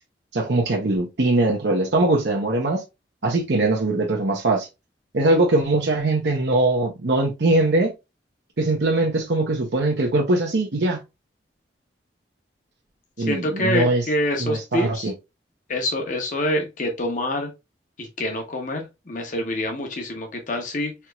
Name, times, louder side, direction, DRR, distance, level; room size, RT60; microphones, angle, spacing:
voice 1, 0.3-2.8 3.2-4.7 5.1-7.9 8.6-11.0 13.2-14.0 14.4-15.1, right 2 dB, 70° right, 0.7 m, -21 dB
voice 2, 13.2-15.1 15.7-17.5 18.0-20.9, left 1 dB, 45° left, 0.8 m, -26 dB
4.4 x 2.9 x 2.2 m
head